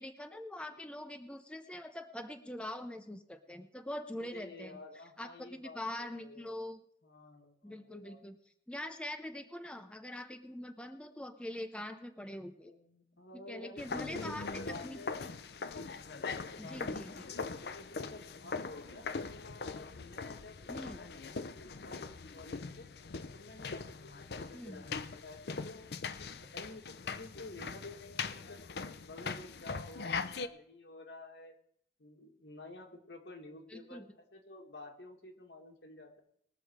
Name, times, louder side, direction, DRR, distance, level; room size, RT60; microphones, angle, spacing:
voice 1, 0.0-4.8 5.2-6.8 7.6-8.4 8.7-12.7 13.5-14.5 14.8-15.0 16.6-17.3 20.7-21.0 24.5-24.9 33.7-34.0, left 1 dB, 5° left, 7 dB, 0.6 m, -43 dB
voice 2, 4.2-6.6 7.0-8.2 12.6-15.2 16.0-19.1 19.6-22.9 23.3-24.9 25.2-28.6 29.0-31.6 32.0-36.2, left 2 dB, 90° left, 2 dB, 2.0 m, -51 dB
sound 1, 13.8-30.5, left 4 dB, 70° left, 0.6 m, -41 dB
20.5 x 6.9 x 4.7 m, 0.69 s
head